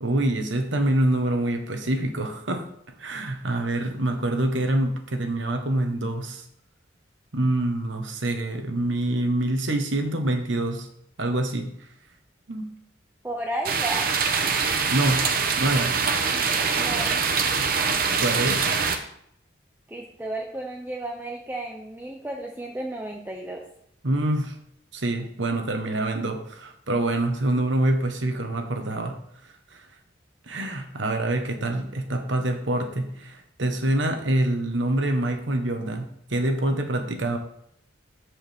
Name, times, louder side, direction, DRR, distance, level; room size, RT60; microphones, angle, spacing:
voice 1, 0.0-2.7 3.0-6.4 7.3-10.9 11.2-11.9 12.5-12.7 14.8-15.3 15.6-16.0 17.8-18.7 24.0-24.5 24.9-29.2 29.7-29.9 30.5-37.4, right 1 dB, 85° right, 5 dB, 1.3 m, -26 dB
voice 2, 13.2-14.1 16.3-17.2 19.9-23.6, right 1 dB, 10° right, 0 dB, 0.7 m, -33 dB
sound 1, 13.7-19.0, right 5 dB, 50° right, 0.9 m, -24 dB
14.0 x 4.8 x 3.6 m, 0.71 s
head